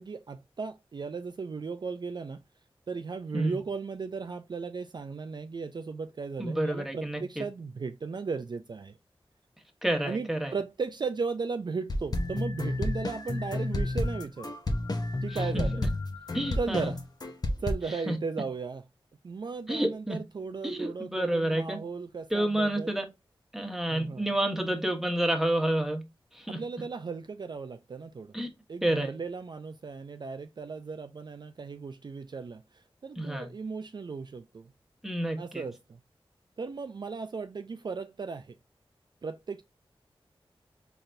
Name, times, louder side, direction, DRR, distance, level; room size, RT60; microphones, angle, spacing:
voice 1, 0.0-2.4 2.9-9.0 10.0-14.5 15.2-15.8 16.6-17.0 17.6-18.8 19.2-22.9 23.9-24.3 26.5-28.3 28.7-34.7 35.4-36.0 36.6-38.6 39.2-39.6, right 4 dB, 50° right, 0.4 m, -36 dB
voice 2, 6.4-7.4 9.8-10.5 15.3-15.9 16.3-16.9 17.9-18.2 19.7-20.2 20.6-21.8 22.3-23.0 23.5-26.0 26.3-26.6 28.3-28.5 28.8-29.1 33.2-33.5 35.0-35.6, right 1 dB, 5° right, 1.1 m, -29 dB
sound 1, 11.9-17.7, left 2 dB, 45° left, 0.8 m, -31 dB
4.0 x 3.3 x 2.5 m
wide cardioid pair, 65°, 10 cm